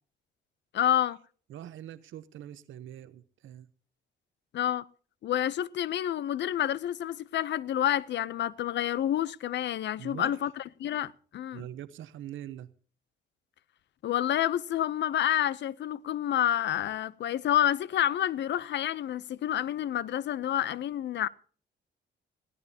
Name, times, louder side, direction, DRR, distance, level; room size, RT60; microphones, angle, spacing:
voice 1, 0.7-1.2 4.5-4.8 5.2-11.7 14.0-21.3, left 11 dB, 65° left, 0.6 m, -29 dB
voice 2, 1.5-3.7 10.0-10.4 11.5-12.7, right 11 dB, 80° right, 0.9 m, -43 dB
21.0 x 16.0 x 2.8 m
cardioid pair, 120°, 20 cm